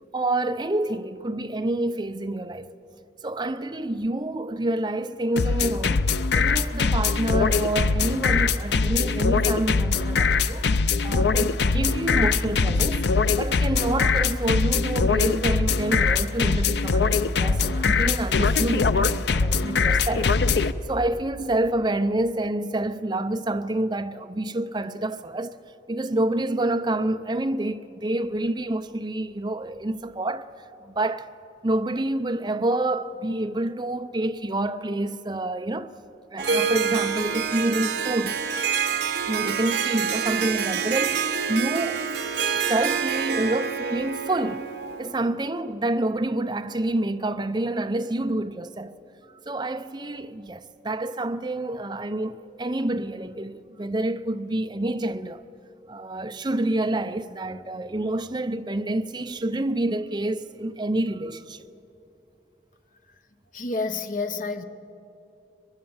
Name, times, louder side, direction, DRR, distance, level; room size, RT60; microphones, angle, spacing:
voice 1, 0.1-2.7 3.2-6.1 6.4-10.7 11.0-13.1 13.4-20.3 20.9-25.6 25.9-30.5 30.8-31.3 31.6-35.9 36.3-38.4 39.3-42.0 42.7-44.7 45.0-48.9 49.5-55.4 55.9-61.6, right 1 dB, 25° right, 0.6 m, -28 dB
sound 1, 5.4-20.7, left 4 dB, 70° left, 0.6 m, -22 dB
Harp, 36.4-45.1, right 7 dB, 75° right, 1.2 m, -27 dB
voice 2, 63.5-64.6, left 3 dB, 45° left, 1.1 m, -29 dB
22.5 x 22.0 x 7.3 m
head